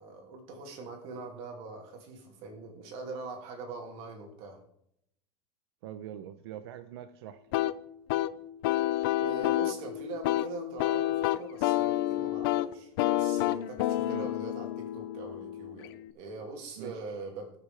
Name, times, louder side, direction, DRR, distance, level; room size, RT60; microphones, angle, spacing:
voice 1, 0.0-4.6 9.2-17.5, right 3 dB, 45° right, 3 dB, 2.8 m, -42 dB
voice 2, 5.8-7.4 14.0-14.3 16.8-16.9, right 11 dB, 85° right, 9 dB, 0.8 m, -43 dB
sound 1, 7.5-16.1, left 14 dB, 60° left, 0.6 m, -29 dB
20.0 x 6.7 x 3.5 m, 0.74 s
supercardioid pair, 175°, 13 cm